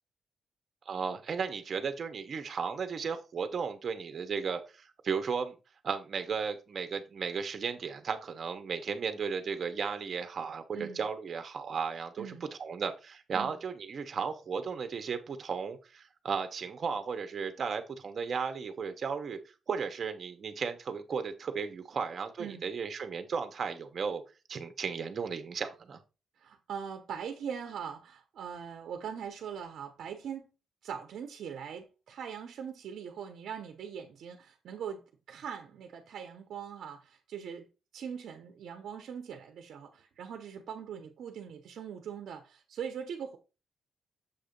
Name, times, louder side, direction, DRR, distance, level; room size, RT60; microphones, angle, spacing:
voice 1, 0.9-5.6 5.8-12.3 12.6-19.4 19.7-24.2 24.5-26.0, right 6 dB, 50° right, 1.0 m, -35 dB
voice 2, 10.7-11.0 12.2-12.4 13.3-13.5 22.4-22.7 26.4-30.5 30.8-37.7 37.9-43.4, right 7 dB, 75° right, 0.8 m, -41 dB
7.2 x 2.8 x 5.2 m
cardioid pair, 125°, 0 cm